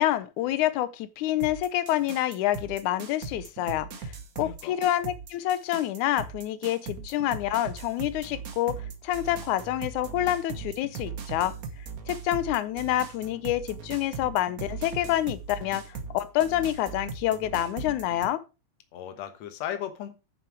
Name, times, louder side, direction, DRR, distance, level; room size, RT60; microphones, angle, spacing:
voice 1, 0.0-11.5 12.1-18.4, left 13 dB, 85° left, 2.2 m, -27 dB
sound 1, 1.4-18.3, right 5 dB, 60° right, 0.9 m, -39 dB
voice 2, 4.4-4.8 18.9-20.1, left 10 dB, 65° left, 2.3 m, -36 dB
9.6 x 6.7 x 4.6 m
omnidirectional pair, 3.4 m